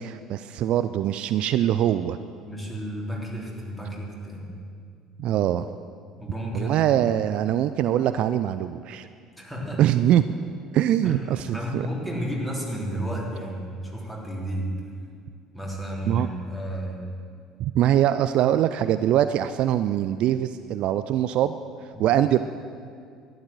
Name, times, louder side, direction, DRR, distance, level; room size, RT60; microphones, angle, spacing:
voice 1, 0.0-2.2 5.2-5.6 6.5-9.1 9.8-10.2 10.7-11.9 16.1-16.3 17.6-21.6 22.0-22.4, right 11 dB, 50° right, 12 dB, 0.4 m, -23 dB
voice 2, 2.4-4.5 6.2-6.9 9.4-9.9 11.0-14.7 15.5-17.0 21.9-22.1, right 1 dB, 5° left, -3 dB, 3.5 m, -32 dB
12.5 x 10.5 x 7.7 m, 2.3 s
figure-of-eight pair, 60°, 2 cm